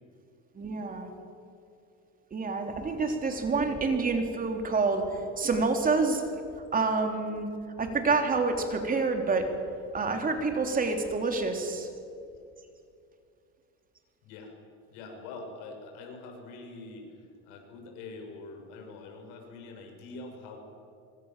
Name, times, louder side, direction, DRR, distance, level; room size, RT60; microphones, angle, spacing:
voice 1, 0.6-1.1 2.3-6.2 6.7-7.5 7.8-9.5 9.9-11.9, right 4 dB, 25° right, 4 dB, 3.6 m, -28 dB
voice 2, 14.2-14.5 14.9-20.6, left 3 dB, 75° left, 3 dB, 7.1 m, -44 dB
25.5 x 25.0 x 7.6 m, 2.5 s
supercardioid pair, 125°, 33 cm